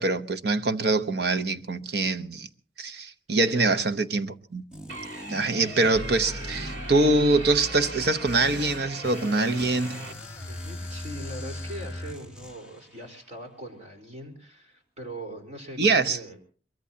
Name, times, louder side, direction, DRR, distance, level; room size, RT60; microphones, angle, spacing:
voice 1, 0.0-2.5 2.8-4.6 5.3-10.1 15.8-16.2, right 2 dB, 55° right, 0.9 m, -24 dB
voice 2, 3.5-3.8 10.5-16.4, right 1 dB, 35° right, 4.3 m, -41 dB
sound 1, 4.7-7.6 9.6-13.0, equal, 5° right, 1.1 m, -45 dB
sound 2, 4.9-10.1, right 2 dB, 80° right, 2.9 m, -40 dB
sound 3, 5.9-12.1, left 1 dB, 10° left, 4.8 m, -38 dB
22.5 x 22.5 x 2.8 m
head